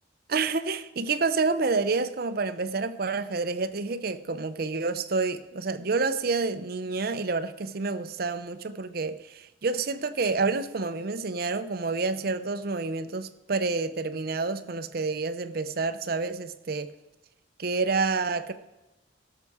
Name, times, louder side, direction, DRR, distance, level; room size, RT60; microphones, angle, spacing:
voice 1, 0.3-16.9 17.6-18.5, right 4 dB, 55° right, 11 dB, 0.6 m, -28 dB
16.5 x 6.7 x 4.8 m, 1.0 s
head